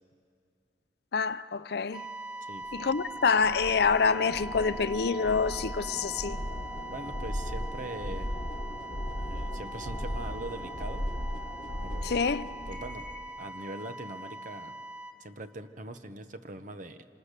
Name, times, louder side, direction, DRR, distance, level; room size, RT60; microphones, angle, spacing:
voice 1, 1.1-2.0 2.7-6.4 12.0-12.5, left 5 dB, 60° left, 0.5 m, -27 dB
sound 1, 1.9-15.1, right 2 dB, 5° right, 1.4 m, -42 dB
sound 2, 2.7-13.3, equal, 25° left, 1.4 m, -37 dB
voice 2, 6.9-8.3 9.2-11.1 11.8-12.2 12.7-13.1 13.4-14.7 15.2-17.0, right 2 dB, 45° right, 0.9 m, -41 dB
27.0 x 26.0 x 6.7 m
head